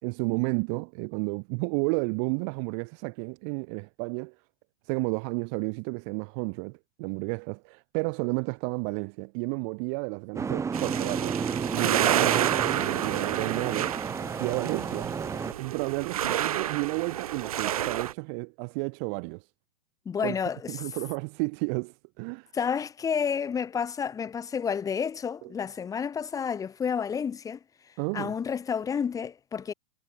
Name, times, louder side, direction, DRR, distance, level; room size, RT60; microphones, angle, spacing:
voice 1, 0.0-4.3 4.9-11.4 11.7-14.0 14.4-15.1 15.6-19.4 20.2-20.3 20.7-22.5 25.4-25.5 28.0-28.3, right 40 dB or more, 50° right, 3.9 m, -32 dB
Boat Water vehicle, 10.4-15.5, right 5 dB, 15° right, 2.9 m, -32 dB
sound 1, 10.7-18.1, right 11 dB, 75° right, 1.0 m, -29 dB
voice 2, 20.1-20.8 22.5-27.6 28.1-29.7, left 7 dB, 20° left, 2.3 m, -30 dB
hypercardioid pair, 115°, 19 cm